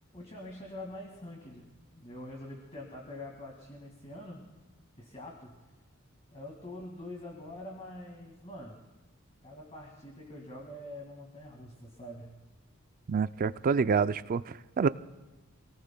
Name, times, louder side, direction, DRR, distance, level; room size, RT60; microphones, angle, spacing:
voice 1, 0.1-4.6 5.0-5.7 6.3-8.8 9.4-12.4, left 1 dB, 30° left, -1 dB, 2.0 m, -45 dB
voice 2, 13.1-14.9, right 5 dB, 40° right, 14 dB, 0.4 m, -27 dB
27.5 x 18.5 x 2.2 m, 1.2 s
head